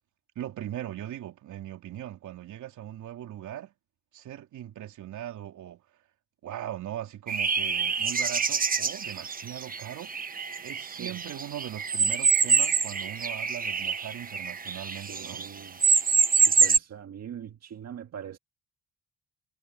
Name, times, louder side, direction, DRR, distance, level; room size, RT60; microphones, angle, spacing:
voice 1, 0.3-3.7 4.1-5.8 6.4-10.1 10.6-15.4, right 12 dB, 75° right, 3.2 m, -39 dB
sound 1, 7.3-15.5 15.8-16.8, right 5 dB, 30° right, 1.2 m, -26 dB
voice 2, 14.9-15.8 16.4-18.4, right 9 dB, 60° right, 1.7 m, -42 dB
cardioid pair, 90°, 30 cm